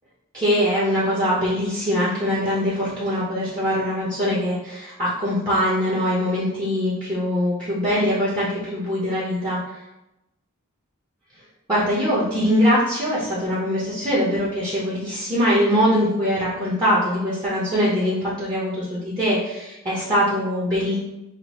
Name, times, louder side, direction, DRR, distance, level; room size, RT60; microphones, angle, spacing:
voice 1, 0.3-9.6 11.7-20.9, equal, 20° right, -10 dB, 0.8 m, -22 dB
5.8 x 2.0 x 3.0 m, 0.92 s
head